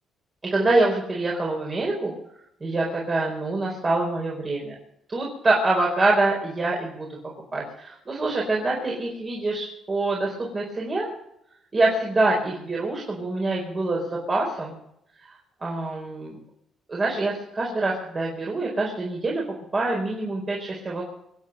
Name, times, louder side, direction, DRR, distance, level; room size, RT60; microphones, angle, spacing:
voice 1, 0.4-2.1 2.6-4.7 5.1-7.1 7.5-11.1 11.7-14.8 15.6-16.4 16.9-19.4 19.7-21.1, right 2 dB, 30° right, -3 dB, 4.6 m, -25 dB
25.5 x 8.5 x 6.7 m, 0.78 s
cardioid pair, 90°, 0 cm